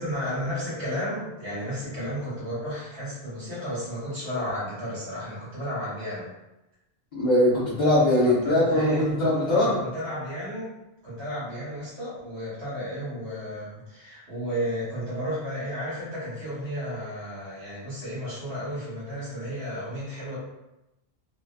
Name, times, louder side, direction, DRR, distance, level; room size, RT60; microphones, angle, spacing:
voice 1, 0.0-6.3 8.2-10.7 11.0-20.4, equal, 60° right, -10 dB, 1.4 m, -33 dB
voice 2, 7.1-9.8, left 1 dB, 40° left, -10 dB, 0.7 m, -21 dB
2.6 x 2.4 x 2.3 m, 0.95 s
omnidirectional pair, 1.1 m